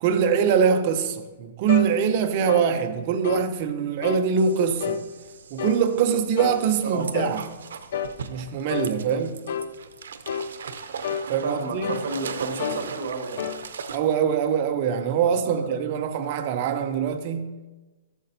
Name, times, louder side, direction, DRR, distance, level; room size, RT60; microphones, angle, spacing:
voice 1, 0.0-5.0 5.5-7.5 8.3-9.4 11.3-12.0 13.9-17.6, right 7 dB, 35° right, 0.6 m, -23 dB
sound 1, 1.7-1.9 2.5-2.7 3.2-3.5 4.0-4.3 4.8-5.0 5.6-5.8 6.4-6.6 7.1-7.4 7.9-8.2 8.7-8.9 9.5-9.7 10.3-10.5 11.0-11.3 11.8-12.1 12.6-12.8 13.4-13.6, left 7 dB, 60° left, 0.4 m, -29 dB
sound 2, 4.4-14.0, right 6 dB, 90° right, 0.6 m, -39 dB
voice 2, 11.4-13.4 15.3-15.7, right 3 dB, 60° right, 1.7 m, -31 dB
12.5 x 7.5 x 2.7 m
hypercardioid pair, 170°, 0 cm